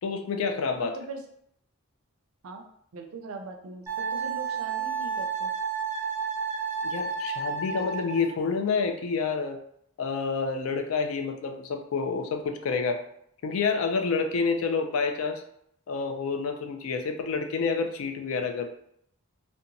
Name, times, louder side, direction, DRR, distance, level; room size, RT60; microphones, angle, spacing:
voice 1, 0.0-1.0 6.8-9.6 10.0-13.1 13.4-15.4 15.9-18.7, left 4 dB, 70° left, 6 dB, 0.4 m, -28 dB
voice 2, 2.9-5.5, right 3 dB, 75° right, 3 dB, 0.4 m, -40 dB
Wind instrument woodwind instrument, 3.9-8.3, right 5 dB, 15° right, 0.6 m, -31 dB
2.8 x 2.2 x 2.6 m, 0.70 s
head